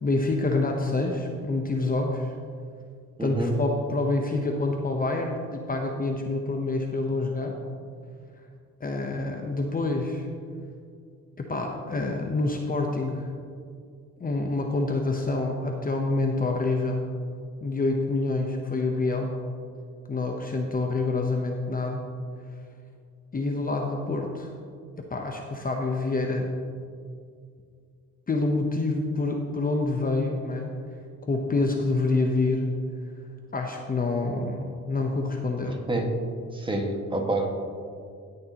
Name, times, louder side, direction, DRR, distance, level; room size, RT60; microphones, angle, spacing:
voice 1, 0.0-2.3 3.2-7.5 8.8-10.3 11.4-13.3 14.2-17.1 17.6-19.3 20.1-22.1 23.3-24.5 25.0-26.5 28.3-30.7 31.2-32.7 33.5-35.8, left 2 dB, 30° left, 2 dB, 0.9 m, -27 dB
voice 2, 3.2-3.6 35.6-36.1 36.5-37.5, right 2 dB, 15° right, 1 dB, 1.6 m, -28 dB
17.0 x 6.6 x 2.9 m, 2.3 s
cardioid pair, 90°, 30 cm